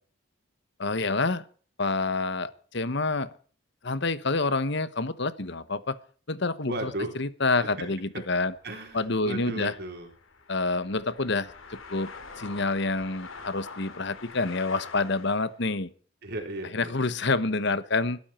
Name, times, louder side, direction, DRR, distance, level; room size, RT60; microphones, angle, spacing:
voice 1, 0.8-1.4 1.8-3.3 3.8-6.0 6.3-6.9 7.2-8.5 8.9-9.7 10.5-11.5 11.9-12.1 12.4-15.9 16.7-18.2, left 3 dB, 60° left, 15 dB, 1.2 m, -27 dB
voice 2, 6.7-7.1 7.6-8.2 8.6-10.1 16.2-16.9, right 1 dB, 50° right, 3 dB, 3.9 m, -35 dB
sound 1, 8.5-15.6, left 4 dB, 80° left, 3.1 m, -45 dB
21.5 x 13.0 x 4.4 m, 0.43 s
head